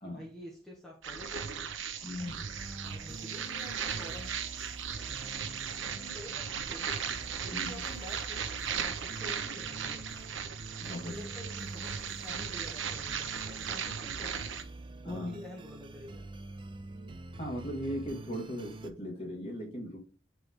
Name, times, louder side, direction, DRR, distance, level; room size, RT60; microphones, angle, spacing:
voice 1, 0.0-1.8 2.3-2.4 2.9-4.4 5.3-7.0 7.4-10.1 11.0-14.4 15.0-16.3, left 1 dB, ahead, -3 dB, 1.0 m, -48 dB
sound 1, 1.0-14.6, right 7 dB, 85° right, 0.7 m, -37 dB
voice 2, 2.0-2.5 7.5-7.8 10.8-11.2 15.0-15.4 17.3-20.0, equal, 30° left, -1 dB, 1.9 m, -38 dB
sound 2, 2.2-18.9, right 2 dB, 25° right, 0.4 m, -46 dB
6.1 x 3.2 x 4.9 m, 0.36 s
head